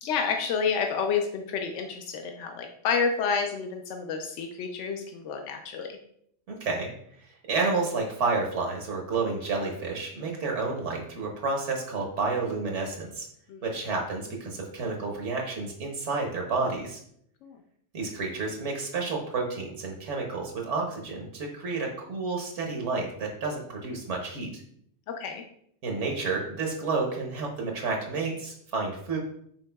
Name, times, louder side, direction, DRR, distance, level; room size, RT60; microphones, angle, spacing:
voice 1, 0.0-6.0 13.5-13.6 17.4-17.6 25.2-25.4, left 6 dB, 90° left, 4 dB, 0.9 m, -29 dB
voice 2, 6.5-6.9 7.2-13.3 13.6-17.0 17.9-24.6 25.8-29.2, right 3 dB, 85° right, 1 dB, 1.2 m, -30 dB
6.1 x 3.8 x 2.2 m, 0.69 s
omnidirectional pair, 1.2 m